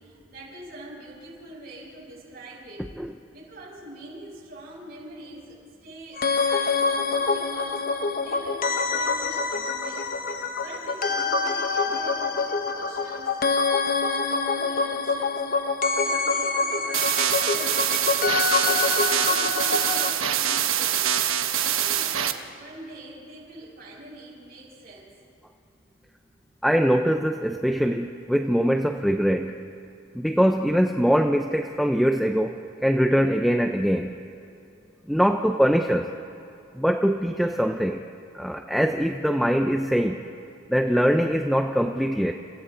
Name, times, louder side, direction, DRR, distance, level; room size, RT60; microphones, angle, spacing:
voice 1, 0.0-2.9 3.3-7.8 8.2-10.1 10.5-13.4 13.7-15.4 15.9-18.1 18.5-21.1 21.6-25.1, right 1 dB, 45° right, -6 dB, 7.0 m, -44 dB
sound 1, 6.2-20.1, left 4 dB, 40° left, 1.0 m, -25 dB
sound 2, 16.9-22.3, right 10 dB, 75° right, 1.2 m, -24 dB
voice 2, 26.6-29.6 30.1-34.1 35.1-36.1 36.7-38.1 38.3-40.2 40.7-42.3, equal, ahead, 4 dB, 0.5 m, -22 dB
30.0 x 29.5 x 3.8 m, 2.7 s
head